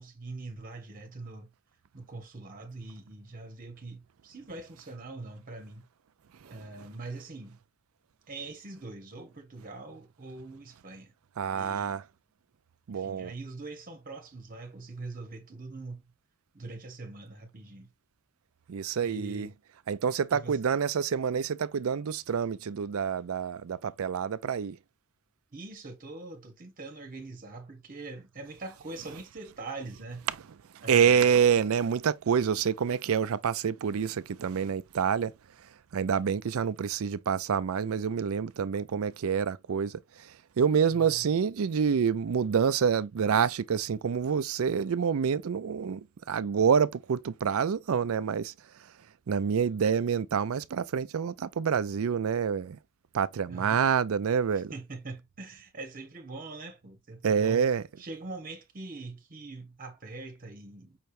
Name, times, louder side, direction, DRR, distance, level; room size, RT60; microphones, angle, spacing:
voice 1, 0.0-1.5 1.9-5.9 6.4-7.6 8.3-11.1 11.5-12.0 12.9-16.1 16.5-17.9 19.0-19.5 20.3-20.6 25.5-30.3 30.8-31.3 40.9-41.3 53.5-53.8 54.7-57.7 58.0-61.0, right 3 dB, 40° right, 1.2 m, -43 dB
voice 2, 11.4-12.0 12.9-13.3 18.7-19.5 19.9-24.8 30.7-35.3 35.9-48.5 49.3-52.8 53.1-54.7 57.2-57.8, right 7 dB, 80° right, 0.4 m, -27 dB
5.7 x 3.2 x 2.6 m
head